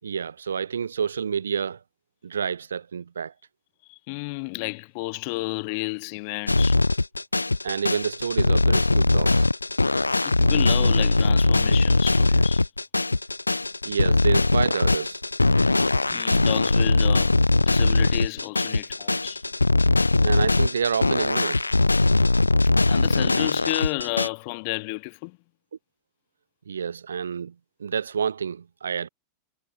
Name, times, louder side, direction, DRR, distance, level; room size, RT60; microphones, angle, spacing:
voice 1, 0.0-1.8 2.2-3.3 7.6-9.5 13.8-15.2 20.2-21.7 26.7-27.5 27.8-29.1, right 7 dB, 70° right, 7.9 m, -28 dB
voice 2, 3.9-6.8 10.2-12.6 16.1-19.4 22.8-25.4, left 32 dB, 45° left, 3.3 m, -32 dB
sound 1, 6.5-24.3, left 2 dB, 80° left, 3.5 m, -21 dB
figure-of-eight pair, 90°, 0 cm